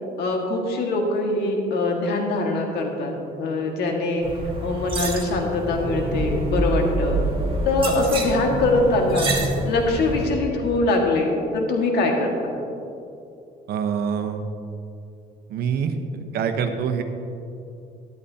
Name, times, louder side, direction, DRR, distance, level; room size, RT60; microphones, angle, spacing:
voice 1, 0.2-4.3 4.6-7.2 7.6-9.3 9.7-12.3, left 2 dB, 75° left, 1 dB, 1.8 m, -23 dB
sound 1, 4.2-10.3, right 2 dB, 30° right, 1.9 m, -27 dB
voice 2, 13.7-14.5 15.5-17.0, right 7 dB, 70° right, 7 dB, 1.0 m, -25 dB
12.5 x 12.0 x 2.8 m, 2.6 s
cardioid pair, 110°, 17 cm